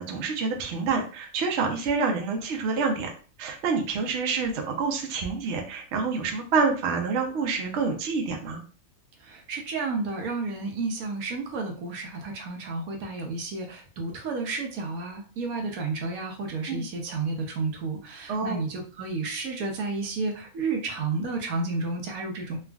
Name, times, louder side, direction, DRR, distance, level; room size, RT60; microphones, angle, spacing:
voice 1, 0.0-3.1 3.4-8.6 16.7-16.8 18.3-18.6, right 4 dB, 65° right, 3 dB, 0.8 m, -27 dB
voice 2, 9.2-22.6, right 3 dB, 80° right, 2 dB, 1.1 m, -31 dB
3.4 x 2.3 x 2.3 m, 0.39 s
omnidirectional pair, 1.5 m